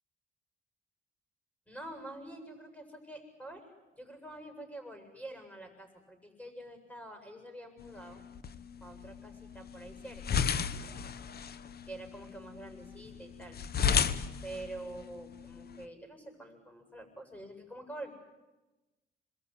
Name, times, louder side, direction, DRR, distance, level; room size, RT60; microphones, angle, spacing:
voice 1, 1.7-3.7 3.9-8.2 8.8-10.4 11.8-13.6 14.4-18.1, right 1 dB, 5° left, 6 dB, 7.9 m, -46 dB
sound 1, 7.8-15.8, left 7 dB, 55° left, 1.2 m, -35 dB
sound 2, 9.5-12.2, left 1 dB, 70° left, 5.3 m, -52 dB
27.5 x 22.0 x 9.9 m, 1.1 s
cardioid pair, 90°, 20 cm